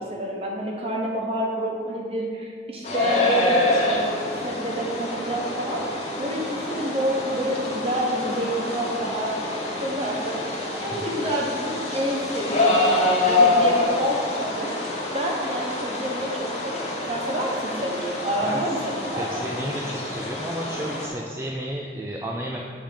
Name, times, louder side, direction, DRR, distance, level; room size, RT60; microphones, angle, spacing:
voice 1, 0.1-4.2 4.4-5.8 6.2-10.4 10.8-14.7 15.1-19.4, equal, 35° right, -1 dB, 1.0 m, -28 dB
sound 1, 2.8-21.1, left 2 dB, 40° left, 1.0 m, -26 dB
voice 2, 10.9-11.2 18.4-18.6 19.2-22.6, equal, 15° right, -3 dB, 0.4 m, -32 dB
7.3 x 3.5 x 5.1 m, 2.2 s
head